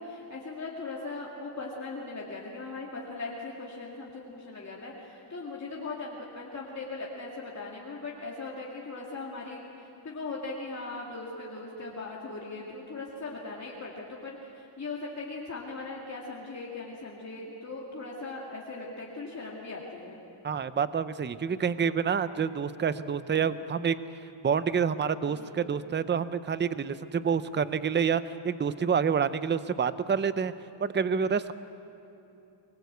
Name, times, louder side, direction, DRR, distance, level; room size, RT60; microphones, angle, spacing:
voice 1, 0.0-20.2 25.2-25.6, left 3 dB, 35° left, -4 dB, 2.4 m, -39 dB
voice 2, 20.4-23.9 24.4-30.5 30.8-31.5, right 6 dB, 25° right, 13 dB, 0.5 m, -28 dB
24.5 x 20.0 x 8.2 m, 2.8 s
wide cardioid pair, 160°, 49 cm